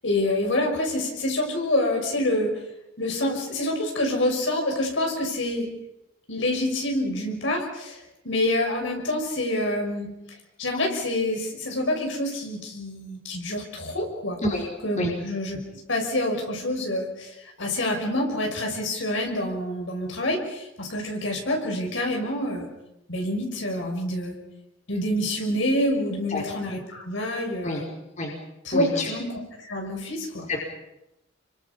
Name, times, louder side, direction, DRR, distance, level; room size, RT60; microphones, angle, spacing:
voice 1, 0.0-2.6 3.0-5.7 6.3-10.1 10.6-14.4 14.8-15.6 15.9-22.7 23.1-24.4 24.9-27.8 28.6-30.5, left 1 dB, 70° left, 1 dB, 6.6 m, -27 dB
voice 2, 28.7-29.1 30.5-30.6, left 1 dB, 40° left, -1 dB, 5.0 m, -27 dB
29.0 x 24.5 x 5.6 m, 0.89 s
head